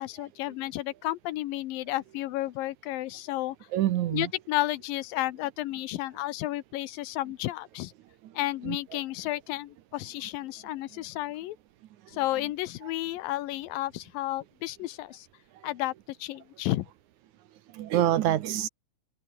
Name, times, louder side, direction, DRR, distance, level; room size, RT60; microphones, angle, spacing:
voice 1, 0.0-3.6 4.1-7.9 8.3-11.6 12.1-15.3 15.6-16.9, left 16 dB, 90° left, 2.7 m, -32 dB
voice 2, 3.7-4.3 8.7-8.8 17.7-18.7, right 13 dB, 70° right, 2.2 m, -26 dB
omnidirectional pair, 4.0 m